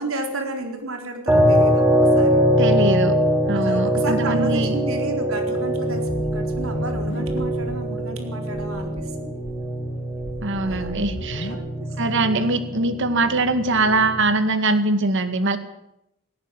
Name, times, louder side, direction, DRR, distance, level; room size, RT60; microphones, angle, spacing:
voice 1, 0.0-2.4 3.5-9.5 10.6-11.0 11.3-12.2, right 2 dB, 80° right, 4 dB, 4.3 m, -32 dB
sound 1, 1.3-14.3, equal, 10° right, 3.5 m, -22 dB
voice 2, 2.6-3.2 3.5-4.7 10.4-11.5 12.0-15.6, right 2 dB, 60° right, 10 dB, 2.2 m, -22 dB
sound 2, 5.9-7.8 8.1-8.2 8.5-9.0 9.4-11.5, left 1 dB, 65° left, 2.0 m, -35 dB
18.0 x 16.5 x 9.3 m, 0.83 s
head